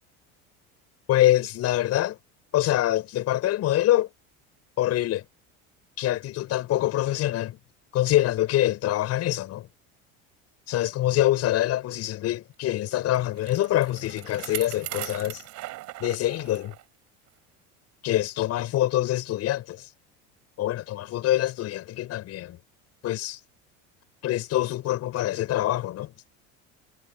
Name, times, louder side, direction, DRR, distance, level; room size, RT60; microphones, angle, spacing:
voice 1, 1.1-2.2 2.5-4.1 4.8-5.2 6.0-7.6 7.9-9.7 10.7-15.4 16.0-16.7 18.0-19.9 20.6-22.6 23.0-23.4 24.2-26.1, left 14 dB, 50° left, 7.3 m, -25 dB
Bicycle, 12.9-16.8 17.3-17.4 18.2-18.3, right 17 dB, 60° right, 3.9 m, -39 dB
cardioid pair, 135°, 32 cm